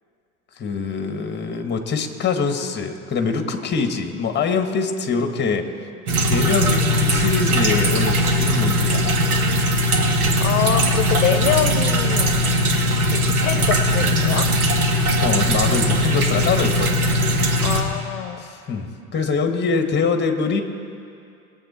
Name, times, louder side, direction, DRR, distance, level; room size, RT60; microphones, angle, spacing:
voice 1, 0.6-5.7 6.3-9.1 15.2-17.7 18.4-20.6, left 5 dB, 25° left, 6 dB, 1.6 m, -24 dB
sound 1, 6.1-17.8, equal, 80° right, 1.7 m, -19 dB
voice 2, 10.4-12.3 13.1-14.5 17.6-18.5, left 9 dB, 70° left, 9 dB, 0.8 m, -24 dB
21.5 x 7.7 x 4.3 m, 2.5 s
hypercardioid pair, 85°, 43 cm